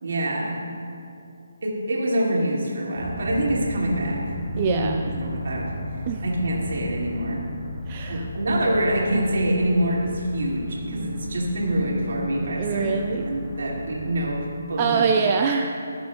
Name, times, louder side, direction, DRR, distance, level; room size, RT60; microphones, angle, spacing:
voice 1, 0.0-0.6 1.6-4.2 4.5-5.7 6.2-7.4 8.1-12.9 13.3-15.1, right 1 dB, 60° right, -3 dB, 2.0 m, -25 dB
sound 1, 3.0-14.5, left 1 dB, 5° right, 1.3 m, -35 dB
voice 2, 4.6-5.1 6.1-6.2 7.9-8.3 12.6-13.3 14.8-15.8, right 6 dB, 30° right, 3 dB, 0.3 m, -24 dB
17.0 x 6.9 x 2.2 m, 2.5 s
figure-of-eight pair, 145°, 0 cm